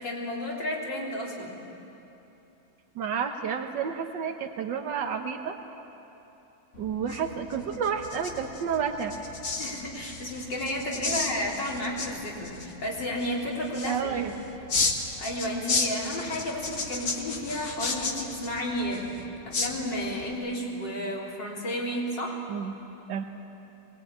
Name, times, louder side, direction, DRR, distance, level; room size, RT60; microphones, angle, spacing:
voice 1, 0.0-1.6 7.1-7.2 9.6-14.2 15.2-19.1 19.5-22.4, left 1 dB, 90° left, -3 dB, 4.5 m, -32 dB
voice 2, 2.9-5.6 6.8-9.2 11.1-11.3 13.9-14.3 22.5-22.7 23.1-23.2, right 7 dB, 90° right, 4 dB, 1.8 m, -30 dB
sound 1, 6.7-20.3, left 4 dB, 45° left, 1.8 m, -34 dB
23.0 x 20.5 x 8.9 m, 2.9 s
omnidirectional pair, 1.9 m